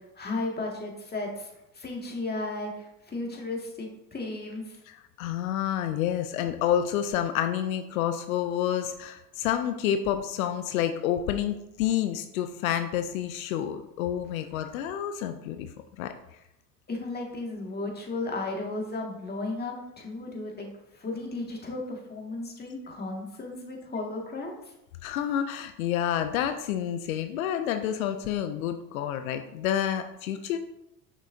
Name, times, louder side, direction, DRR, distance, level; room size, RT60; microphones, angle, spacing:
voice 1, 0.2-1.5 1.7-4.8 16.9-24.6, left 2 dB, 25° left, 0 dB, 1.9 m, -34 dB
voice 2, 4.9-15.7 16.0-16.1 25.0-30.6, left 10 dB, 85° left, 8 dB, 0.5 m, -29 dB
6.4 x 6.0 x 2.7 m, 0.86 s
hypercardioid pair, 75°, 40 cm